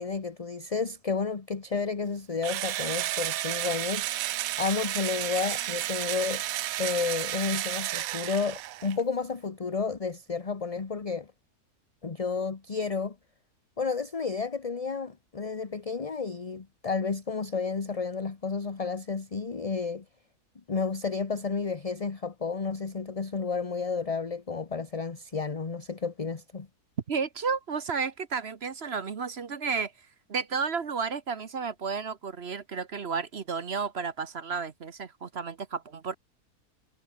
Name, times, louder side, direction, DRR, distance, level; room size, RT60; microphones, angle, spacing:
voice 1, 0.0-6.4 6.8-11.3 12.0-13.1 13.8-20.0 20.7-26.7, left 5 dB, 25° left, 1.0 m, -31 dB
Engine / Drill, 2.4-9.0, right 14 dB, 70° right, 1.0 m, -32 dB
voice 2, 27.1-29.9 30.3-36.1, right 5 dB, 45° right, 1.2 m, -32 dB
omnidirectional pair, 1.6 m